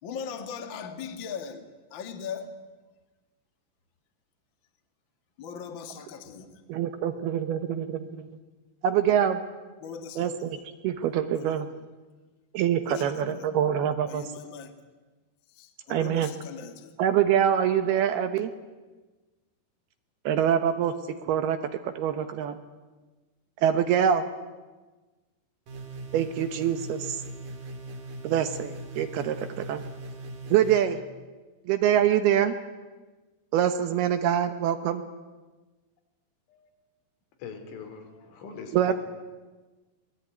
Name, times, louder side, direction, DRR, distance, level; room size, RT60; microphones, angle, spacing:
voice 1, 0.0-1.6 1.9-2.5 5.4-6.6 9.8-10.5 11.3-11.6 12.8-13.5 14.1-14.7 15.5-16.9, left 6 dB, 65° left, 6 dB, 1.1 m, -39 dB
voice 2, 6.7-8.3 8.8-9.4 10.2-10.6 10.8-11.7 12.5-14.2 15.9-16.3 17.0-18.5 20.3-20.9 21.2-21.6 21.8-22.6 23.6-24.2 26.1-27.2 28.2-29.8 30.5-31.0 31.7-32.5 33.5-35.0 38.7-38.9, right 9 dB, 70° right, 9 dB, 2.7 m, -25 dB
sound 1, 25.7-30.8, right 2 dB, 50° right, 3.8 m, -40 dB
voice 3, 37.4-38.0 38.4-38.9, left 6 dB, 85° left, 5 dB, 5.6 m, -41 dB
24.5 x 19.5 x 9.3 m, 1.3 s
omnidirectional pair, 5.3 m